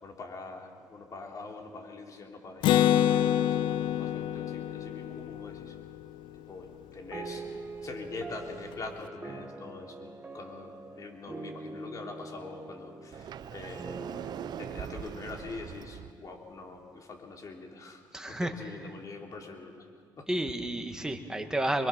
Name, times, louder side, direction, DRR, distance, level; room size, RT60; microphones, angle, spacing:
voice 1, 0.0-5.8 6.3-19.9 20.2-20.3, left 3 dB, 45° left, 1 dB, 3.5 m, -44 dB
Acoustic guitar, 2.6-6.3, left 11 dB, 75° left, 0.5 m, -27 dB
sound 1, 7.1-16.9, right 3 dB, 25° right, 1.4 m, -44 dB
Sliding door, 13.1-16.1, right 9 dB, 55° right, 0.7 m, -41 dB
voice 2, 18.1-18.5 20.3-21.9, right 1 dB, 10° right, 4 dB, 2.1 m, -31 dB
25.0 x 22.5 x 6.2 m, 2.1 s
cardioid pair, 85°, 8 cm